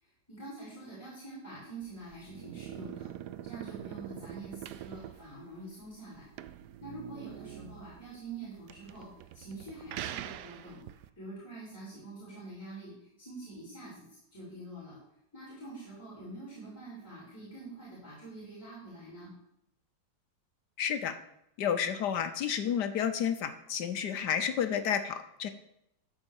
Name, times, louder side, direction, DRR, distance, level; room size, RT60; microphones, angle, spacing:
voice 1, 0.0-3.1 3.4-6.3 6.8-9.1 9.3-15.0 15.3-19.3, right 2 dB, 5° left, -9 dB, 4.5 m, -46 dB
sound 1, 1.8-11.1, right 12 dB, 70° right, 1.0 m, -44 dB
voice 2, 20.8-21.1 21.6-25.5, left 8 dB, 70° left, 9 dB, 1.2 m, -31 dB
13.0 x 4.6 x 7.1 m, 0.81 s
omnidirectional pair, 2.0 m